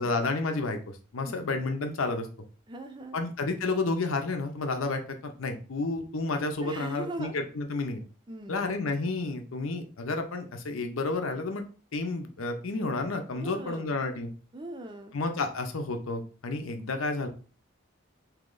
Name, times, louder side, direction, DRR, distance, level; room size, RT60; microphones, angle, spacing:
voice 1, 0.0-2.3 3.1-8.0 8.5-11.6 11.9-14.3 15.1-17.3, left 3 dB, 90° left, 6 dB, 0.7 m, -31 dB
voice 2, 2.7-3.2 6.6-7.3 8.3-8.7 13.3-14.0 14.5-15.2, right 2 dB, 20° right, 5 dB, 0.5 m, -40 dB
3.1 x 2.9 x 3.8 m, 0.38 s
head